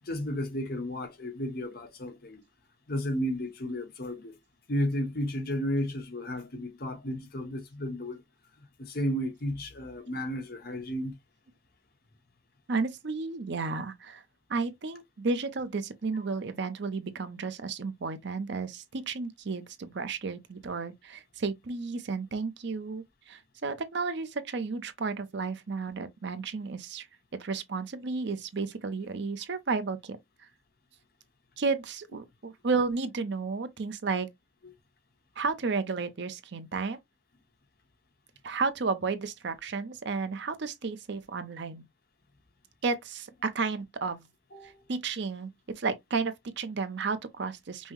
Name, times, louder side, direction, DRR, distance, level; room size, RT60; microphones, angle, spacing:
voice 1, 0.0-2.4 2.9-4.4 4.7-8.2 8.6-11.2 44.5-44.8, equal, 55° left, 1.1 m, -33 dB
voice 2, 12.7-14.2 14.5-27.1 27.4-30.5 31.6-34.3 35.4-37.0 38.4-41.8 42.8-44.3 44.6-47.9, right 4 dB, 60° right, 0.6 m, -32 dB
5.4 x 2.1 x 3.0 m
head